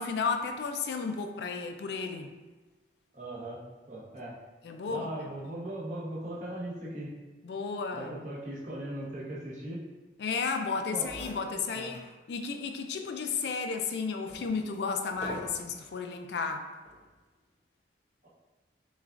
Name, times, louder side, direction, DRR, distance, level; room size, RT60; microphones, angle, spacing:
voice 1, 0.0-2.3 4.6-5.1 7.4-8.1 10.2-12.0 12.3-16.6, left 5 dB, 70° left, 5 dB, 0.3 m, -33 dB
voice 2, 3.1-3.6 3.9-4.4 4.9-7.1 7.9-9.9 10.9-11.1 11.7-12.0, right 1 dB, 40° right, -6 dB, 0.9 m, -38 dB
sound 1, 10.7-10.8 11.0-12.1 12.6-12.7 13.4-16.0 16.7-17.1, equal, 35° left, 0.8 m, -45 dB
6.1 x 2.3 x 2.5 m, 1.2 s
head